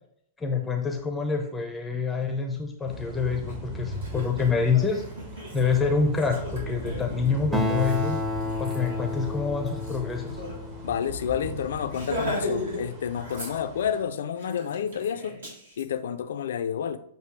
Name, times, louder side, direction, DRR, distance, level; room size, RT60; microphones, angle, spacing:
voice 1, 0.4-5.0 5.5-8.2 8.6-10.4, left 5 dB, 10° left, 0.6 m, -26 dB
sound 1, 2.9-14.0, right 1 dB, 35° right, 1.4 m, -39 dB
Laughter, 3.5-3.6 3.9-10.6 10.9-11.0 11.3-11.5 11.9-12.8 13.1-13.9 14.4-15.8, left 1 dB, 65° right, 1.9 m, -37 dB
Acoustic guitar, 7.5-11.3, left 1 dB, 15° right, 0.9 m, -31 dB
voice 2, 10.8-15.4 15.8-17.0, left 8 dB, 60° left, 0.4 m, -29 dB
7.6 x 2.7 x 4.6 m
figure-of-eight pair, 100°, 0 cm